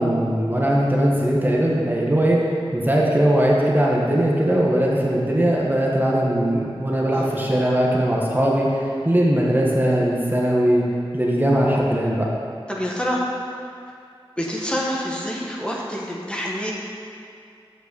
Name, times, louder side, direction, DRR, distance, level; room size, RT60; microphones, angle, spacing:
voice 1, 0.0-10.8 11.1-12.3, right 1 dB, 20° right, -4 dB, 1.4 m, -20 dB
voice 2, 12.7-13.2 14.4-16.7, equal, 10° left, -4 dB, 1.5 m, -27 dB
8.0 x 6.0 x 6.9 m, 2.4 s
wide cardioid pair, 45°, 10 cm